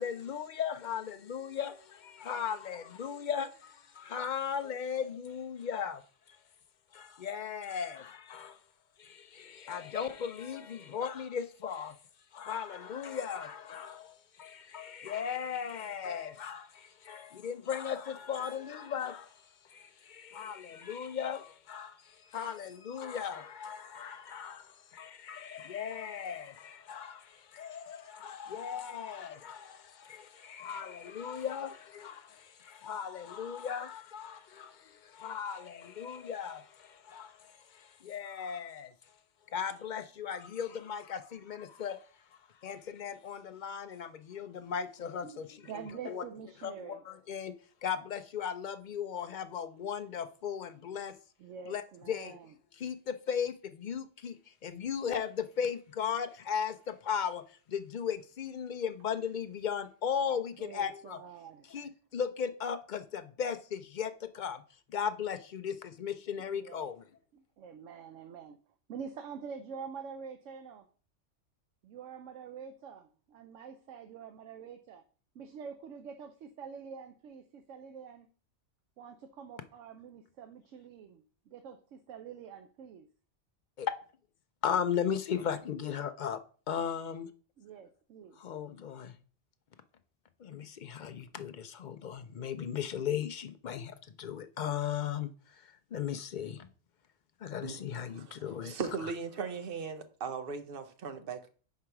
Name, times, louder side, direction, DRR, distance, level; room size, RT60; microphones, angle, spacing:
voice 1, 0.0-6.0 6.3-6.4 6.9-8.6 9.0-12.0 12.3-39.1 39.5-45.6 46.0-46.3 46.6-47.5 47.8-51.1 51.7-52.4 52.8-61.2 61.7-67.0 83.8-84.0 84.6-86.4 86.7-87.3 88.4-89.2 90.4-96.7 97.4-98.7 99.0-99.1, left 7 dB, 60° left, 0.5 m, -37 dB
voice 2, 45.6-47.0 51.4-52.5 60.6-61.8 66.4-66.9 67.3-68.6 68.9-70.9 71.8-75.0 75.3-78.3 79.0-83.1 87.6-88.4, right 6 dB, 90° right, 1.0 m, -46 dB
voice 3, 98.1-101.5, right 5 dB, 55° right, 0.9 m, -38 dB
4.8 x 4.7 x 5.8 m
omnidirectional pair, 1.3 m